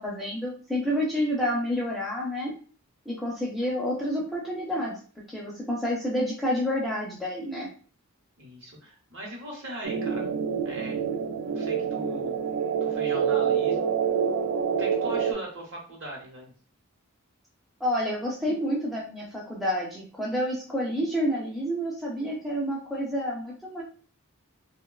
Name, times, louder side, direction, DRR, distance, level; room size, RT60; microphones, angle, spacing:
voice 1, 0.0-2.5 3.1-5.0 5.3-7.7 17.8-23.8, equal, ahead, -4 dB, 0.4 m, -29 dB
voice 2, 8.4-10.3 10.6-11.0 11.4-12.4 12.8-13.9 14.8-16.5, right 1 dB, 55° right, -1 dB, 0.8 m, -39 dB
sound 1, 9.8-15.3, right 7 dB, 85° right, 0.4 m, -27 dB
2.7 x 2.1 x 2.3 m, 0.40 s
head